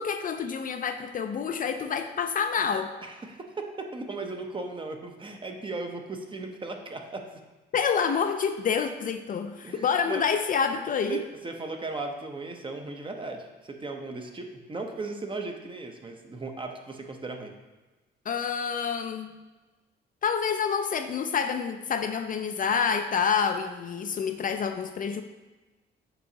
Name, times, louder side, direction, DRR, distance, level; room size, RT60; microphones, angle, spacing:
voice 1, 0.0-2.9 7.7-11.2 18.3-19.3 20.2-25.2, left 6 dB, 45° left, 7 dB, 0.4 m, -28 dB
voice 2, 3.0-7.2 9.6-10.2 11.1-17.5, right 3 dB, 25° right, 3 dB, 0.7 m, -37 dB
6.9 x 4.9 x 2.8 m, 1.2 s
cardioid pair, 90°, 20 cm